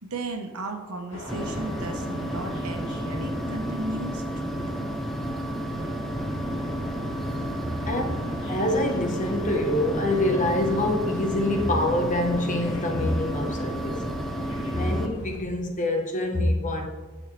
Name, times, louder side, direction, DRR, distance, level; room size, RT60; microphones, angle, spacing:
voice 1, 0.0-4.7 7.6-7.7, right 2 dB, 80° right, 1.2 m, -35 dB
sound 1, 1.1-15.4, left 1 dB, 60° left, 1.9 m, -42 dB
sound 2, 1.3-15.1, equal, ahead, 0.6 m, -31 dB
voice 2, 7.9-8.2 8.5-14.0 14.7-16.9, left 1 dB, 35° left, 1.1 m, -25 dB
11.0 x 6.5 x 3.3 m
head